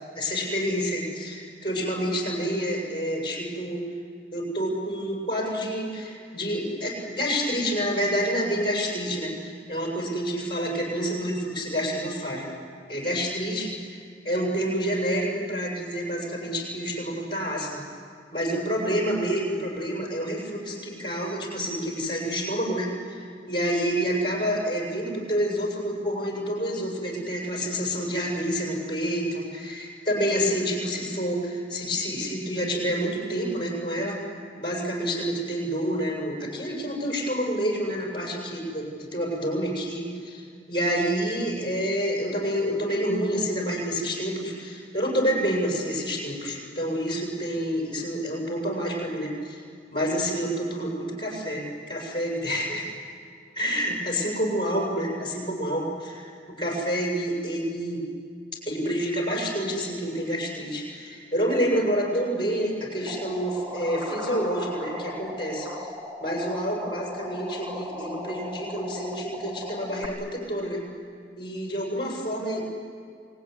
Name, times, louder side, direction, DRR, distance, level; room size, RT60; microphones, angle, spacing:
voice 1, 0.1-3.8 4.3-12.5 12.9-17.8 18.3-34.2 34.6-40.4 40.7-49.6 49.9-52.9 53.6-58.0 58.6-65.7 66.2-70.8 71.4-72.6, equal, 25° left, -2 dB, 7.5 m, -28 dB
sound 1, 63.1-70.1, left 1 dB, 20° right, 2.1 m, -37 dB
27.5 x 20.0 x 9.9 m, 2.2 s
head